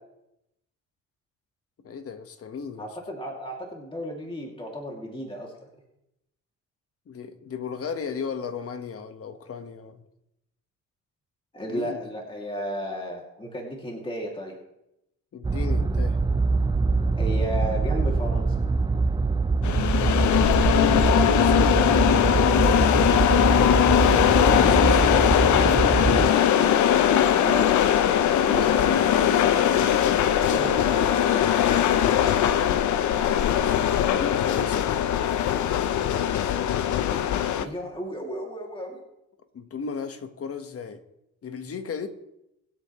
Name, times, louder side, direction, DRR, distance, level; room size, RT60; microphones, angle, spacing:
voice 1, 1.8-2.9 7.1-10.0 11.6-12.0 15.3-16.2 20.7-21.7 23.9-25.1 30.7-31.0 33.3-33.7 34.1-34.9 39.5-41.0 41.4-42.1, left 5 dB, 50° left, 8 dB, 1.5 m, -35 dB
voice 2, 2.8-5.5 11.5-14.5 17.2-18.6 27.4-27.7 28.2-28.9 30.4-31.2 37.4-39.0, equal, 15° left, -1 dB, 2.6 m, -33 dB
sound 1, 15.4-26.3, right 4 dB, 15° right, 0.5 m, -24 dB
sound 2, 19.6-37.7, left 10 dB, 70° left, 0.8 m, -21 dB
23.5 x 8.5 x 3.2 m, 0.85 s
cardioid pair, 90°, 30 cm